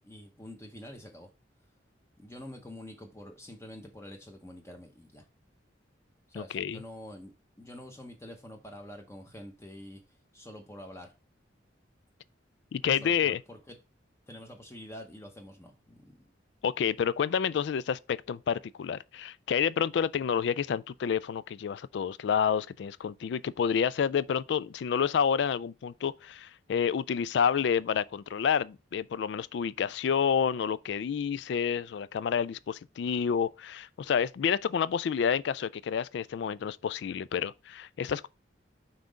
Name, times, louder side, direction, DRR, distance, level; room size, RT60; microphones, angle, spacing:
voice 1, 0.0-1.3 2.2-5.2 6.3-7.3 7.6-10.0 10.3-11.1 13.0-13.8 14.3-16.2, left 1 dB, 15° left, 0.8 m, -46 dB
voice 2, 6.3-6.8 12.7-13.4 16.6-38.3, left 7 dB, 65° left, 0.3 m, -29 dB
5.8 x 3.7 x 5.1 m
head